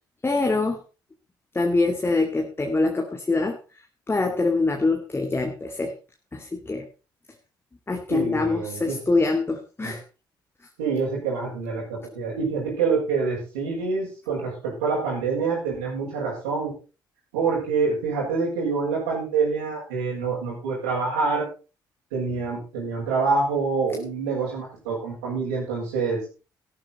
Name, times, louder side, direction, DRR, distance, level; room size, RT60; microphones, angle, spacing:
voice 1, 0.2-0.8 1.5-3.6 4.1-6.0 6.3-6.9 7.9-10.0, left 3 dB, 20° left, 3 dB, 2.2 m, -24 dB
voice 2, 8.1-9.0 9.8-9.9 10.8-16.7 17.3-21.4 22.1-26.2, right 4 dB, 75° right, -8 dB, 6.1 m, -26 dB
14.0 x 12.5 x 4.2 m, 0.33 s
figure-of-eight pair, 45°, 11 cm